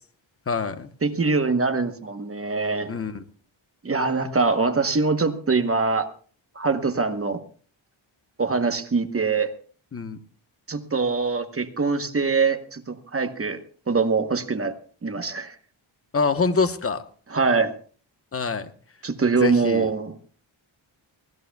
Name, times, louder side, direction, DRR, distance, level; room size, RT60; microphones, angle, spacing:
voice 1, 0.5-0.9 2.9-3.2 9.9-10.2 16.1-17.0 18.3-18.7 19.4-19.9, left 4 dB, 30° left, 9 dB, 1.0 m, -25 dB
voice 2, 1.0-2.9 3.8-6.1 6.5-7.4 8.4-9.5 10.7-13.6 13.9-15.6 17.3-17.7 19.0-20.2, right 4 dB, 30° right, 8 dB, 1.0 m, -23 dB
24.5 x 17.0 x 2.3 m, 0.43 s
wide cardioid pair, 165°, 48 cm